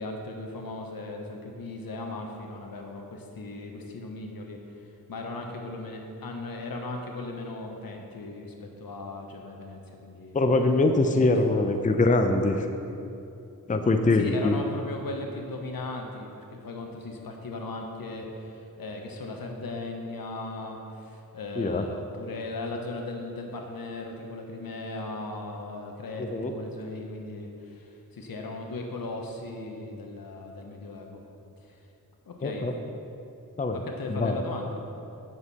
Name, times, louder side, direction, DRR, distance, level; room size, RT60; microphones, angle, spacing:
voice 1, 0.0-4.6 5.1-10.4 11.0-11.2 11.5-11.7 14.1-31.2 31.6-31.8 32.3-32.7 33.7-34.8, left 2 dB, 75° left, 2 dB, 1.1 m, -37 dB
voice 2, 10.3-12.7 13.7-14.6 21.6-21.9 26.2-26.5 32.4-32.7 33.6-33.8 34.1-34.4, left 2 dB, 20° left, 6 dB, 0.6 m, -23 dB
8.1 x 7.3 x 4.2 m, 2.7 s
cardioid pair, 55°, 35 cm